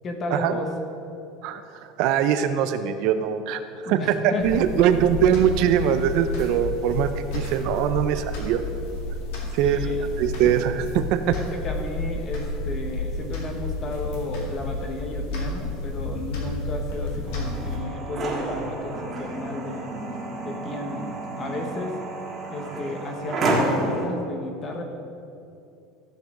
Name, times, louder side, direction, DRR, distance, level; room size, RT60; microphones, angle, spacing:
voice 1, 0.0-0.7 3.8-4.6 9.4-10.1 10.4-10.5 11.3-19.9 20.4-21.1 21.4-22.0 22.5-24.8, left 2 dB, 25° left, 3 dB, 1.2 m, -33 dB
voice 2, 1.4-4.2 4.4-8.6 9.5-9.9 10.2-11.2, right 9 dB, 55° right, 10 dB, 0.5 m, -22 dB
sound 1, 4.4-17.8, left 2 dB, 65° left, 2.2 m, -31 dB
sound 2, 17.3-24.1, right 2 dB, 25° right, 1.7 m, -30 dB
14.5 x 7.4 x 3.8 m, 2.7 s
cardioid pair, 165°, 0 cm